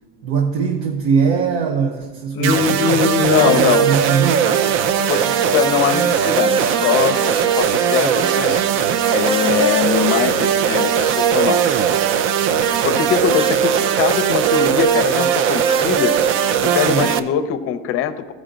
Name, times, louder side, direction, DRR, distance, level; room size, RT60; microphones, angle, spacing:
voice 1, 0.2-3.0 3.4-4.5 16.8-17.2, right 6 dB, 80° right, 2 dB, 0.8 m, -21 dB
voice 2, 2.3-3.9 5.1-11.8 12.8-16.2 16.6-18.3, left 8 dB, 45° left, 12 dB, 0.6 m, -21 dB
sound 1, 2.4-17.2, right 8 dB, 40° right, 0.4 m, -18 dB
14.0 x 5.0 x 3.8 m, 1.4 s
supercardioid pair, 130°, 31 cm